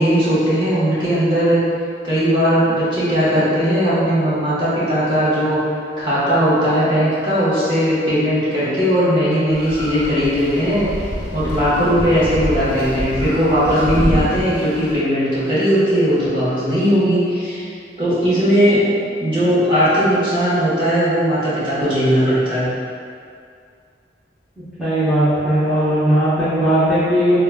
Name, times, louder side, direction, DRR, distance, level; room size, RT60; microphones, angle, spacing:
voice 1, 0.0-1.6 2.0-5.6 6.0-10.8 11.3-17.7 18.0-18.8 19.2-22.7, equal, 25° right, -12 dB, 1.2 m, -18 dB
sound 1, 9.5-14.9, equal, 65° right, 0.9 m, -26 dB
voice 2, 24.8-27.4, equal, ahead, -16 dB, 0.7 m, -17 dB
5.5 x 2.3 x 2.3 m, 2.3 s
head